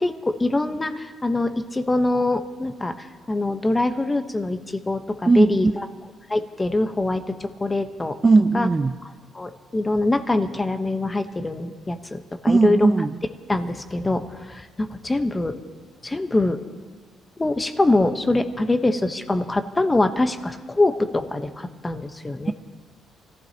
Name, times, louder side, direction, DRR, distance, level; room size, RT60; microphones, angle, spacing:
voice 1, 0.0-5.9 6.3-8.2 8.5-8.7 9.3-12.9 13.5-15.6 16.0-16.6 17.4-22.5, left 2 dB, 20° left, 8 dB, 1.0 m, -24 dB
voice 2, 5.3-5.6 8.2-8.9 12.5-13.1, right 3 dB, 25° right, 10 dB, 0.4 m, -17 dB
26.0 x 15.0 x 2.9 m, 1.5 s
cardioid pair, 90°, 0 cm